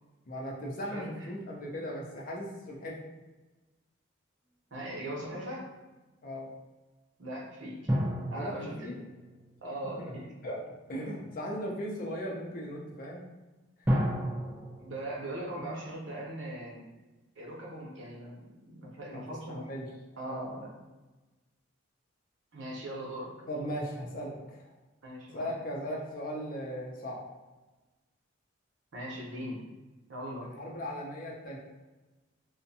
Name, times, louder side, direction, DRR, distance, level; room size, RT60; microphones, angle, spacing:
voice 1, 0.2-3.0 6.2-6.5 8.3-9.0 9.8-10.1 10.4-10.6 10.9-13.2 19.1-19.2 19.5-19.9 20.2-20.6 23.5-24.7 25.3-27.2 30.4-31.6, equal, 45° left, -2 dB, 0.5 m, -38 dB
voice 2, 0.9-1.3 4.7-5.7 7.2-7.7 8.3-8.9 9.6-10.3 14.8-16.8 17.4-19.7 20.2-20.7 22.5-23.3 25.0-25.5 28.9-29.6 30.1-30.5, right 1 dB, 65° right, -3 dB, 0.7 m, -40 dB
sound 1, 7.9-10.5 13.9-16.5 16.7-16.8, equal, 10° right, 0.4 m, -34 dB
2.5 x 2.1 x 2.6 m, 1.2 s
head